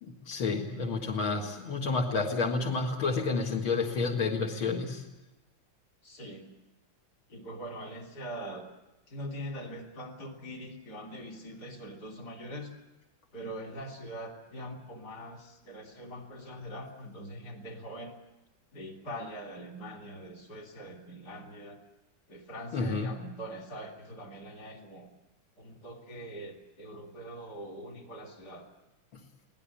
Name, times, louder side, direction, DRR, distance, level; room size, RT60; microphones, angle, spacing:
voice 1, 0.0-5.1 22.7-23.2 29.1-29.2, left 4 dB, 80° left, 0 dB, 2.7 m, -30 dB
voice 2, 6.0-6.5 7.3-8.7 9.1-12.7 13.3-18.1 18.7-21.8 22.3-25.1 25.6-28.7, equal, 50° left, 2 dB, 3.7 m, -43 dB
24.0 x 18.0 x 8.5 m, 1.0 s
omnidirectional pair, 2.2 m